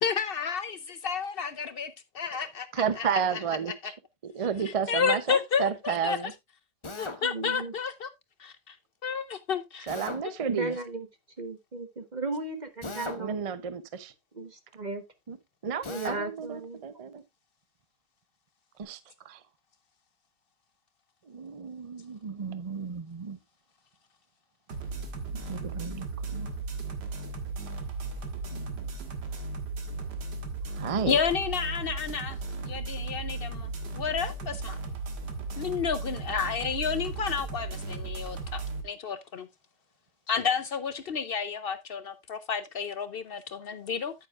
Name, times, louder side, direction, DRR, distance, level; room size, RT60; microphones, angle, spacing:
voice 1, 0.0-1.9 2.2-3.2 3.8-3.9 4.6-6.3 7.0-8.1 8.4-8.8 9.0-9.9 10.2-10.3 31.1-32.4 32.6-34.8 35.6-39.5 40.3-44.1, left 6 dB, 70° left, 0.5 m, -31 dB
voice 2, 2.7-3.9 4.2-6.3 9.9-10.7 13.1-14.1 15.3-15.4 15.6-17.2 18.8-19.0 19.2-19.4 21.3-23.4 25.3-26.1 26.3-26.5 28.5-28.6 30.8-31.2, right 7 dB, 65° right, 0.3 m, -32 dB
Drill, 6.8-7.2 9.9-10.2 12.8-13.3 15.8-16.2, left 3 dB, 25° left, 0.7 m, -37 dB
voice 3, 7.2-7.7 10.5-11.1 11.4-13.4 14.3-15.0 15.9-16.8, right 2 dB, 30° right, 1.0 m, -35 dB
sound 1, 24.7-38.8, right 3 dB, 80° right, 2.1 m, -36 dB
9.5 x 9.2 x 2.4 m
omnidirectional pair, 1.8 m